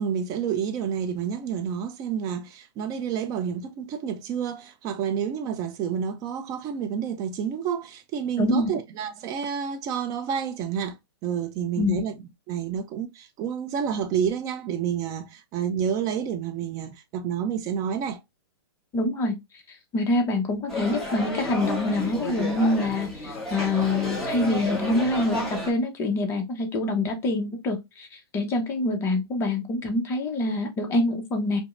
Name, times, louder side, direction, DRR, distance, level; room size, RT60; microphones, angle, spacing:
voice 1, 0.0-12.2 12.5-18.2, right 8 dB, 25° right, 0.5 m, -29 dB
voice 2, 8.4-8.7 11.8-12.0 18.9-19.3 19.7-31.6, left 2 dB, 20° left, 0.7 m, -25 dB
sound 1, 20.7-25.7, left 1 dB, 5° left, 1.0 m, -31 dB
5.0 x 2.0 x 2.4 m
hypercardioid pair, 145°, 13 cm